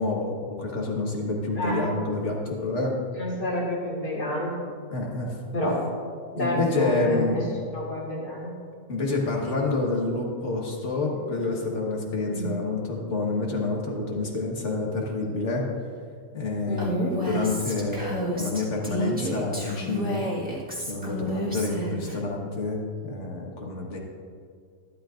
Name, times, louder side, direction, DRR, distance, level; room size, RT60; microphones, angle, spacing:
voice 1, 0.0-2.9 4.9-5.4 6.4-7.4 8.9-15.7 16.3-20.2 20.9-24.0, left 3 dB, 50° left, -1 dB, 1.7 m, -28 dB
voice 2, 1.6-1.9 3.1-4.5 5.5-5.8 6.3-7.4 7.7-8.6 12.3-12.7 16.6-17.2, left 1 dB, 85° left, -4 dB, 2.9 m, -29 dB
Female speech woman speaking, 16.8-22.2, equal, 5° right, 1.4 m, -31 dB
13.0 x 12.0 x 2.5 m, 2.1 s
omnidirectional pair, 1.7 m